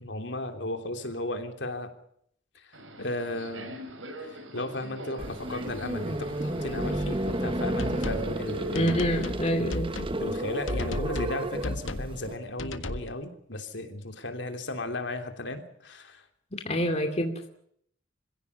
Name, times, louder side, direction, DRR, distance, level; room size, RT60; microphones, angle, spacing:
voice 1, 0.0-1.9 2.5-3.8 4.2-9.0 10.2-16.2 16.7-16.9, left 1 dB, 65° left, 6 dB, 3.1 m, -35 dB
Subway metro underground, 2.7-9.3, right 1 dB, 80° right, 5.0 m, -43 dB
sound 1, 5.2-12.3, right 1 dB, 25° right, 1.2 m, -32 dB
sound 2, 7.8-8.3 8.8-9.4 9.7-10.2 10.7-11.4 11.6-12.1 12.6-13.1, left 1 dB, 85° left, 1.6 m, -33 dB
voice 2, 8.7-9.9 16.5-17.5, equal, 35° left, 4 dB, 2.4 m, -27 dB
26.0 x 16.5 x 8.3 m, 0.68 s
head